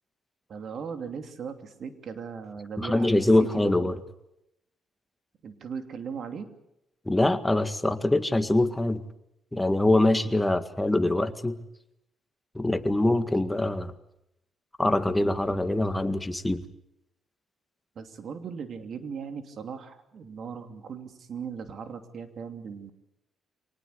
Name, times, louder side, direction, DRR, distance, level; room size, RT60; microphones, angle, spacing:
voice 1, 0.5-3.1 3.4-3.8 5.4-6.5 17.9-22.9, right 6 dB, 60° right, 7 dB, 2.9 m, -38 dB
voice 2, 2.8-4.0 7.1-9.0 9.5-11.5 12.6-13.9 14.8-16.6, left 1 dB, 10° left, 9 dB, 1.8 m, -24 dB
25.0 x 19.0 x 8.2 m, 0.82 s
cardioid pair, 90°, 0 cm